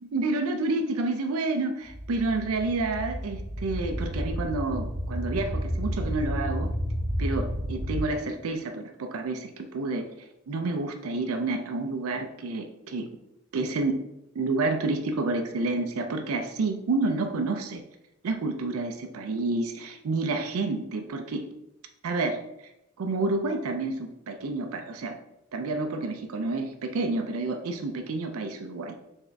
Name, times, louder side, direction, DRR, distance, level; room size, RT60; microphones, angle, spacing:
voice 1, 0.0-6.7 7.2-10.1 10.5-13.1 13.5-14.0 14.3-17.8 18.2-21.5 22.0-22.4 23.0-25.2 25.5-29.0, right 3 dB, 80° right, 6 dB, 0.4 m, -29 dB
sound 1, 1.8-8.0, equal, 40° right, 1.1 m, -31 dB
3.6 x 3.3 x 3.9 m, 0.85 s
head